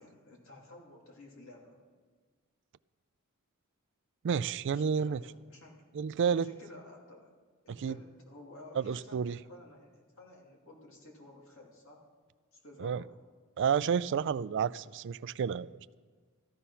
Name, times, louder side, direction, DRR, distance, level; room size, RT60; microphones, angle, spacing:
voice 1, 0.0-1.8 4.7-5.8 6.3-7.3 7.6-12.0 12.5-13.2, left 2 dB, 65° left, 2.8 m, -53 dB
voice 2, 4.2-5.2 5.9-6.5 7.8-8.0 8.8-9.4 12.8-13.0 13.6-15.7, right 7 dB, 55° right, 0.3 m, -30 dB
14.0 x 12.0 x 5.6 m
head